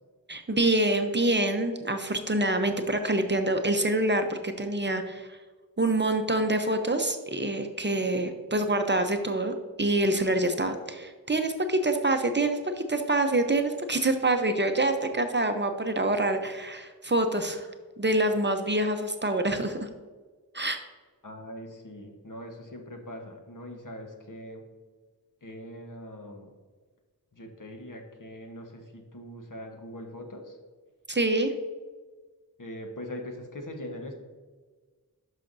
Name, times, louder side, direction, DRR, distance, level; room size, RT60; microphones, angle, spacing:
voice 1, 0.3-5.4 5.8-12.6 12.9-17.7 18.0-19.9 20.5-20.8 31.1-31.5, right 2 dB, 30° right, 6 dB, 0.6 m, -26 dB
voice 2, 21.2-24.6 25.4-26.5 27.3-30.6 32.6-34.1, left 1 dB, 60° left, 2 dB, 1.3 m, -41 dB
11.5 x 5.7 x 2.6 m, 1.4 s
wide cardioid pair, 65°, 36 cm